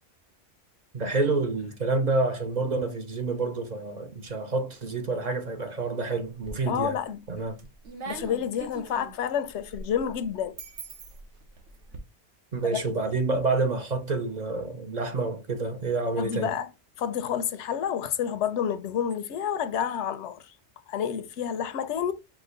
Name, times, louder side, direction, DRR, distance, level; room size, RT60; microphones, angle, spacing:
voice 1, 0.9-7.0 7.3-7.6 12.5-16.5, right 3 dB, 50° right, 0.6 m, -28 dB
sound 1, 6.4-6.9 7.3-12.0, right 4 dB, 80° right, 1.2 m, -42 dB
voice 2, 6.7-7.3 8.1-10.6 12.6-12.8 16.2-16.7 17.0-20.5 20.9-22.1, left 8 dB, 90° left, 0.9 m, -29 dB
4.9 x 2.1 x 3.8 m
omnidirectional pair, 1.1 m